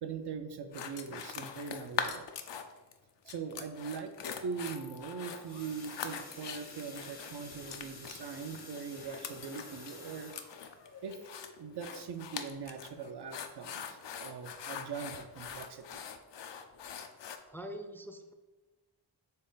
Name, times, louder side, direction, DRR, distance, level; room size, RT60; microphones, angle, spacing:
voice 1, 0.0-2.3 3.3-4.1 4.4-10.3 11.0-11.2 11.6-16.0, right 6 dB, 65° right, 7 dB, 0.5 m, -41 dB
sound 1, 0.7-2.9 3.3-17.4, left 7 dB, 75° left, 0.5 m, -42 dB
sound 2, 1.1-2.1 3.2-6.5, equal, 85° right, 1.1 m, -59 dB
sound 3, 4.9-13.6 14.0-14.3 14.5-14.6 15.1-15.2, left 3 dB, 60° left, 0.9 m, -51 dB
voice 2, 17.5-18.3, equal, 5° left, 5 dB, 0.4 m, -44 dB
4.3 x 3.3 x 3.8 m, 1.2 s
cardioid pair, 40°, 44 cm